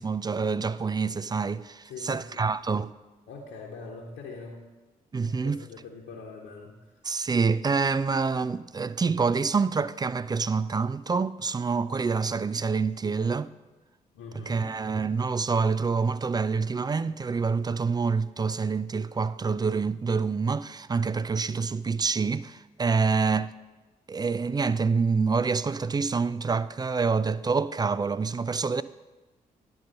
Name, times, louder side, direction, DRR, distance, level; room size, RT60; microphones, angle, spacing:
voice 1, 0.0-2.9 5.1-5.6 7.0-13.5 14.4-23.5 24.1-28.8, right 4 dB, 20° right, 0.3 m, -27 dB
voice 2, 1.9-2.5 3.3-4.6 5.2-6.9 14.1-14.7, left 4 dB, 70° left, 1.1 m, -43 dB
10.0 x 4.0 x 6.6 m
hypercardioid pair, 40°, 20 cm